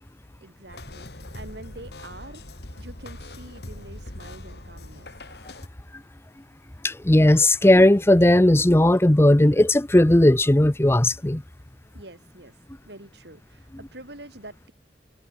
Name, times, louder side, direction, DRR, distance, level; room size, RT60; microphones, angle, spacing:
voice 1, 0.4-2.5 2.8-5.1 11.9-12.6 12.8-14.7, right 2 dB, 75° right, 6.2 m, -45 dB
sound 1, 0.7-5.7, left 1 dB, 65° left, 3.1 m, -41 dB
voice 2, 6.8-11.4, left 1 dB, 15° left, 0.6 m, -17 dB
head